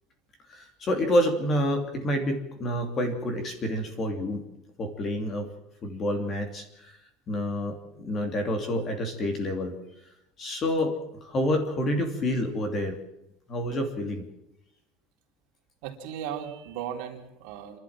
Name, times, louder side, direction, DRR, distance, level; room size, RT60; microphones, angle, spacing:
voice 1, 0.5-4.4 4.8-5.5 5.8-7.0 7.3-9.7 10.4-13.0 13.5-14.2, left 1 dB, 25° left, 6 dB, 2.9 m, -28 dB
voice 2, 15.8-17.8, right 9 dB, 60° right, 2 dB, 3.4 m, -36 dB
29.0 x 12.0 x 7.4 m, 0.83 s
cardioid pair, 180°, 0 cm